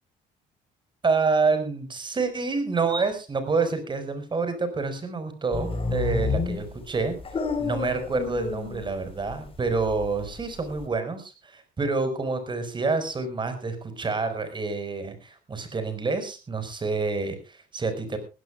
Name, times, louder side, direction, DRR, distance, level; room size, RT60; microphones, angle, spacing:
voice 1, 1.0-7.2 7.6-18.2, right 4 dB, 30° right, 9 dB, 5.0 m, -28 dB
sound 1, 5.5-9.3 9.7-10.9, left 4 dB, 35° left, 4.2 m, -29 dB
21.5 x 16.5 x 2.3 m, 0.30 s
cardioid pair, 110°, 17 cm